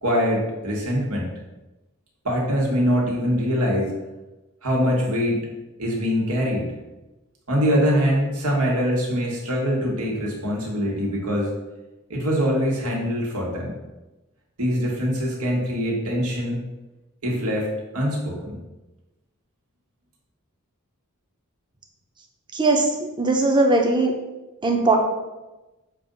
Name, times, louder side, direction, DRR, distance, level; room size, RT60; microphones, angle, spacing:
voice 1, 0.0-1.3 2.2-4.0 4.6-5.4 5.8-6.7 7.5-11.5 12.1-13.7 14.6-16.6 17.2-17.7 17.9-18.6, equal, 80° right, -2 dB, 1.6 m, -23 dB
voice 2, 22.5-24.1 24.6-25.0, right 2 dB, 20° right, 1 dB, 0.8 m, -19 dB
6.8 x 2.6 x 5.3 m, 1.1 s
head